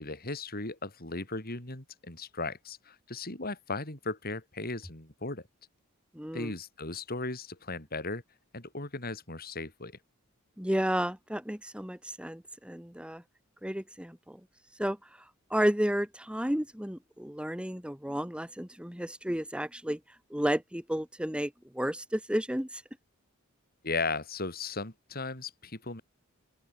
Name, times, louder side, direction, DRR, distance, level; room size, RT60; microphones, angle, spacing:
voice 1, 0.0-5.4 6.3-8.2 8.5-10.0 23.8-26.0, left 3 dB, 50° left, 5.3 m, -36 dB
voice 2, 6.2-6.5 10.6-13.2 13.6-14.4 14.8-15.0 15.5-20.0 20.3-22.8, equal, 5° right, 1.6 m, -32 dB
open air
head